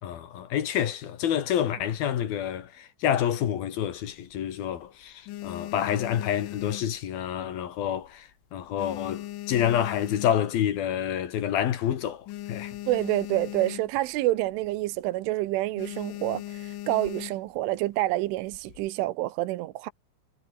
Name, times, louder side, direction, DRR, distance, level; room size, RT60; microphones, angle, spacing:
voice 1, 0.0-12.8, left 10 dB, 60° left, 3.2 m, -28 dB
sound 1, 4.0-4.7 5.1-7.6 7.9-8.2 8.5-10.8 11.2-11.3 11.5-11.6 12.0-14.2 14.5-14.7 15.1-15.3 15.8-17.6 18.3-18.9, left 14 dB, 85° left, 4.0 m, -39 dB
voice 2, 12.9-19.9, right 17 dB, 80° right, 3.4 m, -28 dB
omnidirectional pair, 5.6 m